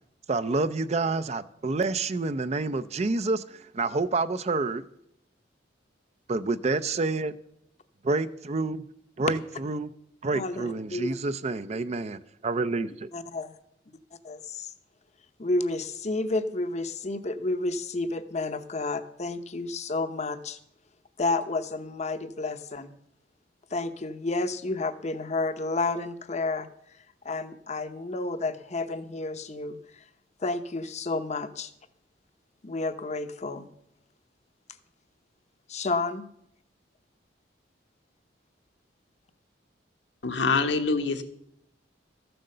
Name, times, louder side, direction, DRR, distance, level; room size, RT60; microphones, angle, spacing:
voice 1, 0.3-4.8 6.3-7.3 8.0-8.8 9.2-9.9 10.2-13.1, right 3 dB, 35° right, 0.5 m, -28 dB
voice 2, 10.3-11.1 13.1-13.5 14.2-14.7 15.4-20.6 21.2-22.9 23.7-26.7 27.2-29.8 30.4-31.7 32.6-33.7 35.7-36.3, left 2 dB, 40° left, 0.8 m, -30 dB
voice 3, 40.2-41.2, left 4 dB, 70° left, 1.2 m, -25 dB
14.0 x 7.8 x 6.6 m
head